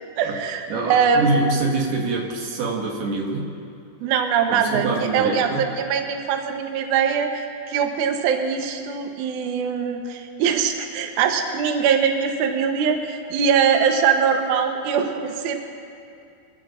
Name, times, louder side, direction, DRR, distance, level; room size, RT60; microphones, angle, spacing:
voice 1, 0.2-1.2 4.0-15.6, right 7 dB, 70° right, 4 dB, 2.0 m, -22 dB
voice 2, 0.7-3.5 4.5-5.6, right 3 dB, 90° right, -1 dB, 3.7 m, -25 dB
24.0 x 15.5 x 2.5 m, 2.4 s
omnidirectional pair, 4.4 m